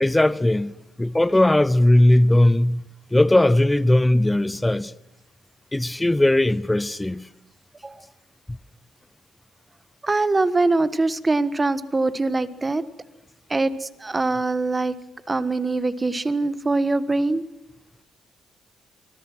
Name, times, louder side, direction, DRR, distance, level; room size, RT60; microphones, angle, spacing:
voice 1, 0.0-2.8 3.1-4.9 5.7-7.3, left 1 dB, 10° left, 0.9 m, -18 dB
voice 2, 10.0-12.8 13.5-14.9 15.3-17.4, right 3 dB, 20° right, 1.4 m, -23 dB
24.5 x 21.5 x 6.2 m
cardioid pair, 90°, 0 cm